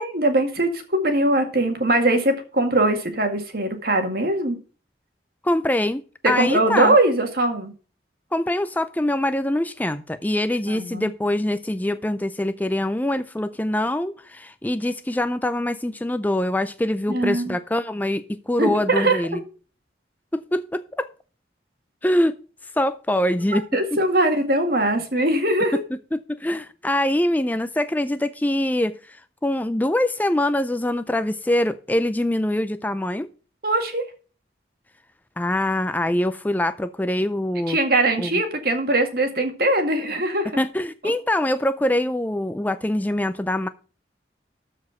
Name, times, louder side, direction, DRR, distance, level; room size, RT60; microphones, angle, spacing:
voice 1, 0.0-4.6 6.2-7.7 10.7-11.1 17.1-17.6 18.6-19.4 23.5-25.8 33.6-34.0 37.7-40.6, right 1 dB, 55° right, 6 dB, 2.0 m, -21 dB
voice 2, 5.4-7.0 8.3-19.4 20.3-21.1 22.0-22.3 22.8-23.6 23.9-24.0 25.7-25.8 26.1-33.3 35.4-37.8 38.2-38.3 40.6-43.7, left 1 dB, 10° left, 11 dB, 0.4 m, -24 dB
13.0 x 4.9 x 5.7 m, 0.37 s
head